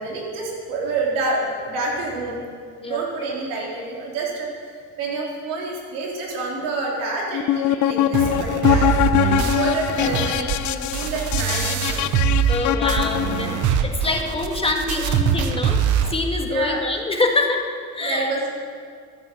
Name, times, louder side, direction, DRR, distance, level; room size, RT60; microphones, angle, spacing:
voice 1, 0.0-2.4 2.8-4.7 5.0-12.0 16.5-16.8 18.0-18.5, right 3 dB, 85° right, -2 dB, 3.6 m, -28 dB
sound 1, 7.3-13.7, left 12 dB, 60° left, 0.6 m, -23 dB
sound 2, 8.1-12.6 12.9-16.1, right 8 dB, 65° right, 1.2 m, -23 dB
voice 2, 9.3-9.7 12.5-15.8 16.1-18.3, left 2 dB, 15° left, 2 dB, 1.8 m, -25 dB
13.5 x 9.3 x 7.5 m, 2.1 s
cardioid pair, 100°, 33 cm